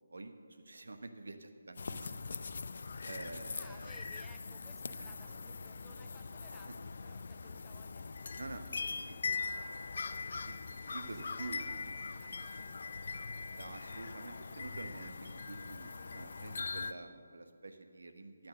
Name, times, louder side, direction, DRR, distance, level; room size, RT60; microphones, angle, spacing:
voice 1, 0.1-2.3 3.0-4.0 4.9-5.1 8.4-8.6 9.1-9.2 10.4-10.6 10.8-11.7 13.5-18.5, right 3 dB, 65° right, 7 dB, 1.1 m, -48 dB
sound 1, 1.8-16.9, left 4 dB, 55° left, 0.5 m, -42 dB
voice 2, 3.6-9.7 10.7-13.5, left 1 dB, ahead, 1 dB, 0.6 m, -62 dB
12.5 x 9.0 x 6.3 m, 2.1 s
figure-of-eight pair, 150°, 0 cm